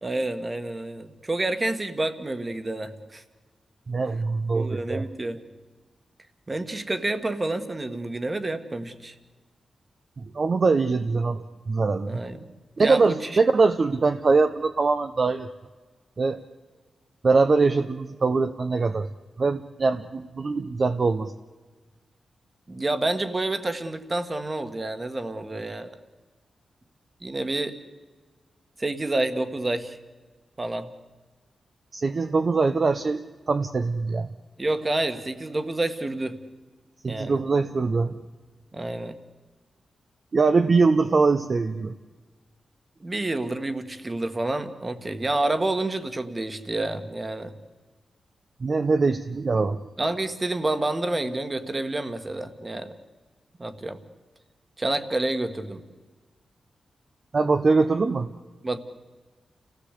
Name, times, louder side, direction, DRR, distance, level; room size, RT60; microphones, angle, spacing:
voice 1, 0.0-3.2 4.5-5.4 6.5-9.1 12.1-12.5 12.8-13.4 22.7-26.0 27.2-27.8 28.8-30.0 30.6-30.9 34.6-36.4 37.1-37.4 38.7-39.1 43.0-47.5 50.0-52.9 53.6-54.0 54.8-55.8 58.6-58.8, right 2 dB, 25° right, 9 dB, 1.6 m, -29 dB
voice 2, 3.9-5.0 10.3-12.2 12.8-15.5 16.2-16.4 17.2-19.1 19.4-21.3 31.9-34.3 37.0-38.2 40.3-41.9 48.6-49.8 57.3-58.3, right 4 dB, 40° right, 7 dB, 0.8 m, -22 dB
29.5 x 16.5 x 8.4 m, 1.4 s
wide cardioid pair, 135°, 0 cm